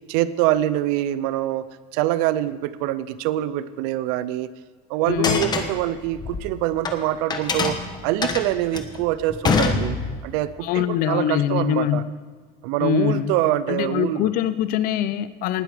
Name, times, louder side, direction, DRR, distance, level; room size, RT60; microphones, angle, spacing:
voice 1, 0.1-1.7 1.9-4.5 4.9-12.0 12.6-14.3, right 14 dB, 85° right, 15 dB, 0.6 m, -24 dB
voice 2, 5.1-5.4 10.6-12.1 12.8-13.3 13.7-15.6, left 11 dB, 55° left, 14 dB, 0.7 m, -23 dB
sound 1, 5.1-7.0 7.3-10.4, left 5 dB, 25° left, 1.1 m, -25 dB
19.0 x 8.2 x 5.0 m, 1.4 s
cardioid pair, 155°, 17 cm